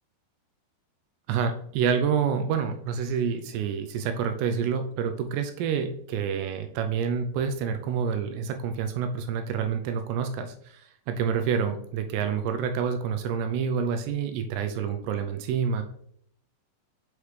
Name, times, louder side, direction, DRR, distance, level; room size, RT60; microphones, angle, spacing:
voice 1, 1.3-15.8, right 7 dB, 85° right, 6 dB, 2.4 m, -28 dB
7.0 x 4.9 x 3.1 m, 0.66 s
omnidirectional pair, 5.3 m